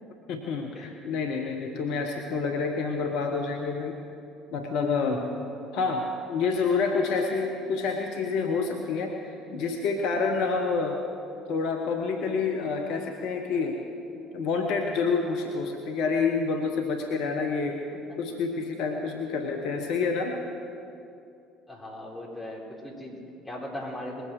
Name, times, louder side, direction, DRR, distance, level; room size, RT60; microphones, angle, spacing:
voice 1, 0.3-4.0 4.5-5.3 5.7-9.2 9.5-11.0 11.5-13.8 14.3-17.9 18.2-20.4, left 4 dB, 60° left, 3 dB, 1.1 m, -28 dB
voice 2, 21.7-24.3, left 1 dB, 10° left, -3 dB, 4.2 m, -38 dB
20.5 x 8.2 x 6.3 m, 2.6 s
figure-of-eight pair, 55°, 0 cm